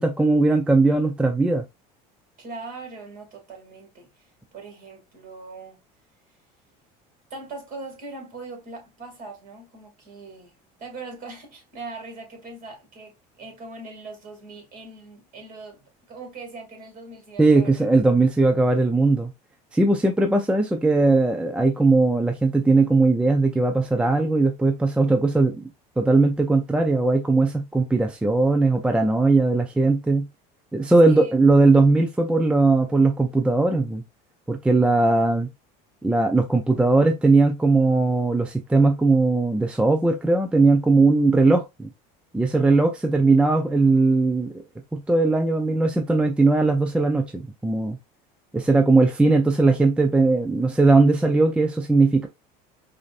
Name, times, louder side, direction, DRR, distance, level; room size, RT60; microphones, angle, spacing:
voice 1, 0.0-1.6 17.4-19.3 19.7-25.6 26.0-30.3 30.7-34.0 34.5-35.5 36.0-41.9 42.3-44.5 44.9-48.0 48.5-52.3, right 3 dB, 5° right, 0.5 m, -19 dB
voice 2, 2.4-5.8 7.3-10.5 10.8-17.9 31.0-31.3, right 3 dB, 45° right, 2.4 m, -40 dB
4.9 x 2.7 x 2.4 m
supercardioid pair, 125°, 20 cm